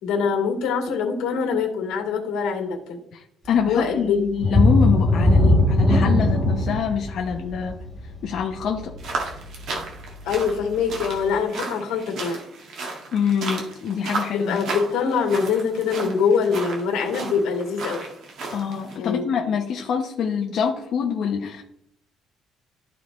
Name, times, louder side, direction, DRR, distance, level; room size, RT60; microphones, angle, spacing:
voice 1, 0.0-3.0 3.7-4.3 10.2-12.4 14.3-18.0 19.0-19.3, left 6 dB, 85° left, 3 dB, 2.1 m, -24 dB
voice 2, 3.1-7.8 8.2-8.9 13.1-14.6 18.5-21.6, left 7 dB, 50° left, 1 dB, 0.9 m, -25 dB
sound 1, 4.4-9.8 10.3-10.4 10.9-11.0, left 1 dB, 15° right, 1.7 m, -19 dB
sound 2, 9.0-19.0, right 3 dB, 55° right, 1.9 m, -34 dB
13.0 x 4.6 x 3.2 m, 0.74 s
cardioid pair, 165°, 0 cm